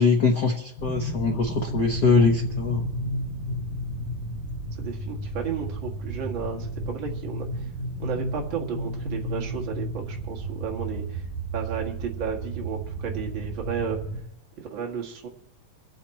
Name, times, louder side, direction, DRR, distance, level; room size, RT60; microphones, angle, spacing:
voice 1, 0.0-2.8, left 4 dB, 75° left, 1 dB, 0.9 m, -22 dB
sound 1, 0.8-14.2, right 1 dB, 20° left, 3.4 m, -32 dB
voice 2, 4.7-7.7 8.0-11.3 11.5-14.0 14.6-15.3, right 7 dB, 40° right, 1 dB, 2.1 m, -33 dB
24.5 x 8.3 x 4.4 m, 0.76 s
omnidirectional pair, 3.8 m